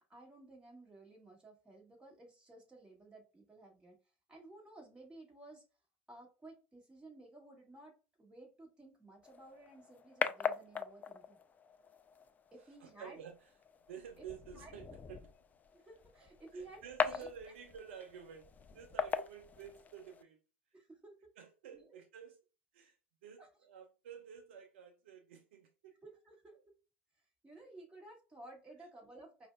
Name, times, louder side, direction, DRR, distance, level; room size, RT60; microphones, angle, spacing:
voice 1, 0.1-4.0 4.3-5.6 6.1-11.4 12.5-13.2 14.2-14.3 14.5-14.7 15.7-17.3 20.7-21.3 21.7-22.0 23.4-23.5 26.0-26.6 27.4-29.5, right 2 dB, 15° right, 1.9 m, -55 dB
sound 1, 9.2-20.2, left 6 dB, 25° left, 0.4 m, -41 dB
voice 2, 12.6-13.3 13.9-15.3 16.5-18.5 18.7-20.4 21.4-22.4 22.7-23.0 23.2-26.0, right 8 dB, 75° right, 0.6 m, -51 dB
5.2 x 2.3 x 2.3 m
hypercardioid pair, 85°, 6 cm